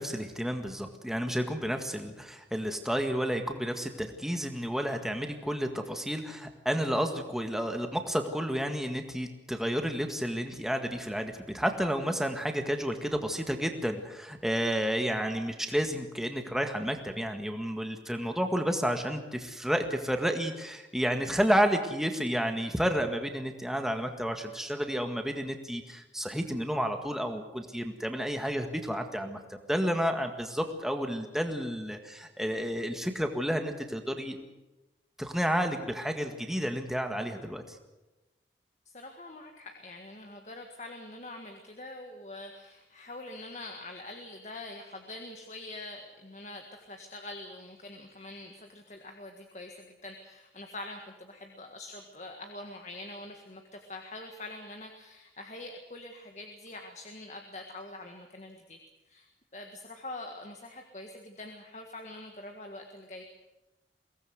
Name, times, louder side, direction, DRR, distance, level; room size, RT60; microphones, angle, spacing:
voice 1, 0.0-29.4 29.7-34.4 35.2-37.8, equal, ahead, 5 dB, 1.8 m, -31 dB
voice 2, 38.9-58.8 59.1-63.2, left 2 dB, 40° left, 3 dB, 1.8 m, -44 dB
23.0 x 18.5 x 8.1 m, 1.0 s
head